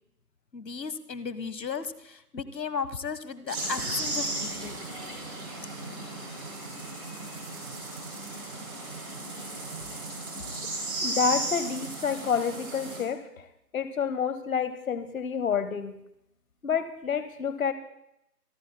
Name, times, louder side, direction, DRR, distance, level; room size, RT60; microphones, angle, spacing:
voice 1, 0.5-4.8, left 5 dB, 90° left, 14 dB, 1.3 m, -35 dB
sound 1, 3.5-13.0, right 2 dB, 20° right, 6.4 m, -35 dB
voice 2, 11.0-13.5 13.7-15.9 16.6-17.7, left 6 dB, 55° left, 11 dB, 0.9 m, -29 dB
26.5 x 13.5 x 2.2 m, 0.79 s
hypercardioid pair, 175°, 49 cm